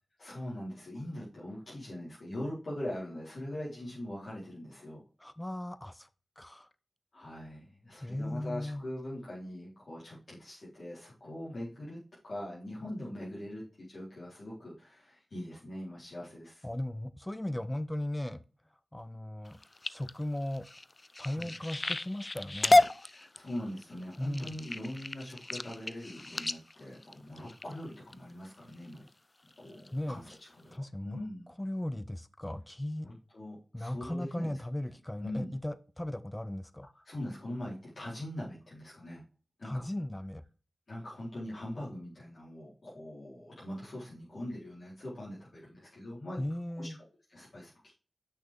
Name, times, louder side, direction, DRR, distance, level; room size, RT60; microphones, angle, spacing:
voice 1, 0.2-5.0 7.1-12.0 12.2-16.7 21.2-21.5 23.0-29.0 29.6-31.5 33.0-34.5 35.2-35.5 37.1-39.2 39.6-39.9 40.9-46.4 46.8-46.9 47.3-47.9, left 1 dB, 65° left, -8 dB, 4.5 m, -42 dB
voice 2, 5.2-6.1 6.4-6.7 8.0-8.8 16.6-18.4 18.9-19.6 19.9-20.7 21.2-22.9 24.2-24.6 29.9-30.2 30.7-31.3 31.6-33.1 33.7-36.9 39.6-40.4 46.4-47.0, left 1 dB, 15° left, 14 dB, 0.8 m, -37 dB
sound 1, 19.5-28.1 28.7-29.1 29.5-29.9 30.3-30.4 30.7-30.8, left 2 dB, 35° left, 0.4 m, -31 dB
8.6 x 6.0 x 3.8 m, 0.36 s
cardioid pair, 45°, 0 cm